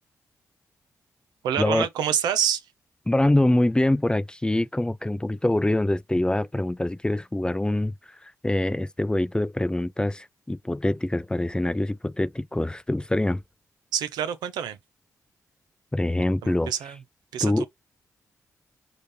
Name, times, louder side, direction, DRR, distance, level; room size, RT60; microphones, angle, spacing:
voice 1, 1.4-2.6 13.9-14.8 16.4-17.0 17.3-17.7, right 9 dB, 85° right, 0.6 m, -27 dB
voice 2, 3.1-13.4 15.9-16.7 17.4-17.7, left 1 dB, 15° left, 0.4 m, -24 dB
5.1 x 2.6 x 3.3 m
supercardioid pair, 45°, 7 cm